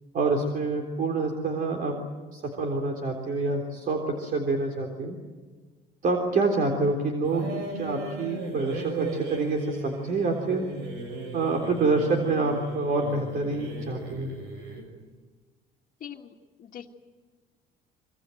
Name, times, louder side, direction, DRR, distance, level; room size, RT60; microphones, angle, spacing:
voice 1, 0.1-2.0 2.3-5.2 6.0-10.7 11.3-14.3, right 3 dB, 55° right, 2 dB, 3.7 m, -27 dB
sound 1, 7.2-14.9, right 2 dB, 85° right, 6.4 m, -36 dB
voice 2, 16.0-16.9, left 9 dB, 55° left, -1 dB, 1.8 m, -43 dB
25.5 x 24.5 x 7.8 m, 1.4 s
cardioid pair, 110°, 17 cm